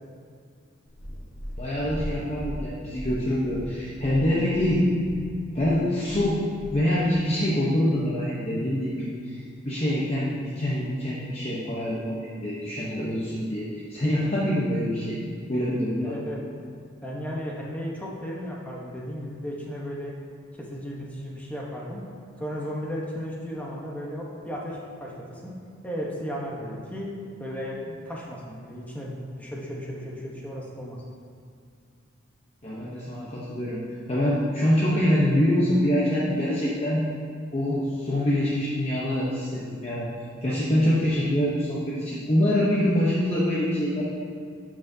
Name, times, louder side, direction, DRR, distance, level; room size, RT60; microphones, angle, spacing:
Purr, 0.9-7.2 7.9-8.0, equal, 65° left, 1.4 m, -38 dB
voice 1, 1.6-4.9 5.5-6.4 6.7-15.2 15.5-16.2 32.6-33.8 34.1-37.1 37.5-40.1 40.4-44.0, equal, 30° left, -7 dB, 0.8 m, -25 dB
voice 2, 15.8-16.4 17.0-20.1 20.6-22.0 22.4-25.5 25.8-27.1 27.4-31.0, equal, 5° left, -4 dB, 1.0 m, -35 dB
12.0 x 5.9 x 2.8 m, 2.3 s
head